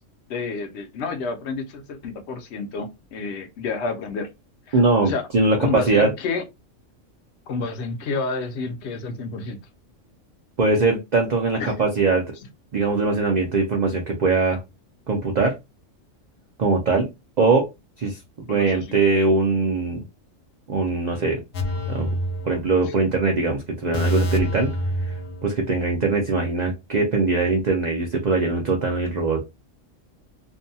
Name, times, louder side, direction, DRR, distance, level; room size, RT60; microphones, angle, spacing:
voice 1, 0.3-4.3 4.7-5.2 5.6-6.4 7.5-9.6 11.6-11.9 18.4-18.9 22.9-23.0, left 4 dB, 65° left, 0.9 m, -30 dB
voice 2, 4.7-6.1 10.6-12.3 12.7-14.6 15.1-15.5 16.6-17.1 17.4-17.7 18.0-18.2 18.5-20.0 20.7-21.4 21.9-22.1 22.4-24.7 25.4-29.4, right 3 dB, 55° right, 0.5 m, -21 dB
sound 1, 21.5-23.1 23.4-23.5 23.9-25.9 26.1-26.3, equal, 90° left, 1.0 m, -27 dB
2.7 x 2.2 x 2.6 m
omnidirectional pair, 1.3 m